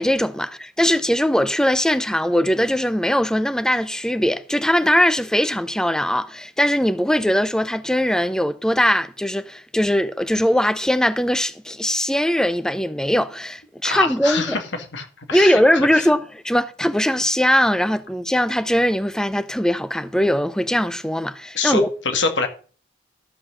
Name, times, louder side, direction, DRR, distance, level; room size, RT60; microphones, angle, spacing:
voice 1, 0.0-14.6 15.3-21.9, equal, 5° left, 0.6 m, -20 dB
voice 2, 13.8-14.6 14.9-16.1 21.5-22.5, left 4 dB, 70° left, 2.1 m, -25 dB
13.0 x 6.0 x 6.4 m
head